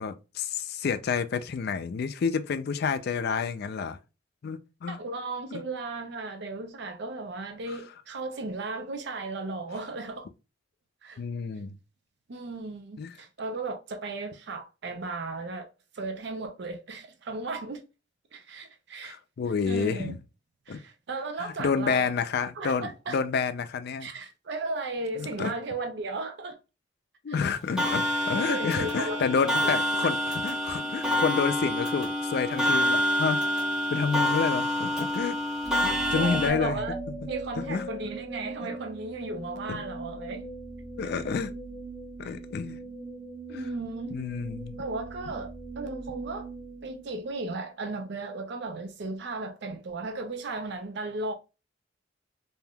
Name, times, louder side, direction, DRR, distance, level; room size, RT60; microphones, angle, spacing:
voice 1, 0.0-4.0 4.4-5.0 5.5-5.6 7.7-7.8 11.2-11.8 13.0-13.1 19.0-20.2 20.7-20.8 21.4-24.1 25.2-25.5 27.2-33.4 33.9-35.4 35.8-36.8 37.6-37.9 38.6-38.7 39.7-39.8 41.0-41.5 42.2-42.8 43.5-43.7 44.1-44.8, left 5 dB, 55° left, 0.4 m, -29 dB
voice 2, 4.9-10.3 11.0-11.2 12.3-15.7 15.9-17.8 18.3-19.2 19.6-20.1 20.7-22.1 22.6-23.2 24.0-26.6 27.3-27.4 28.3-29.2 29.4-29.8 36.1-37.0 37.3-40.5 43.5-44.2 44.8-45.5 45.8-46.5 46.8-51.3, right 3 dB, 65° right, 0.5 m, -35 dB
Clock, 27.8-36.5, left 1 dB, 5° right, 0.8 m, -27 dB
sound 1, 35.6-47.7, right 3 dB, 25° left, 0.8 m, -40 dB
3.4 x 2.6 x 2.2 m
head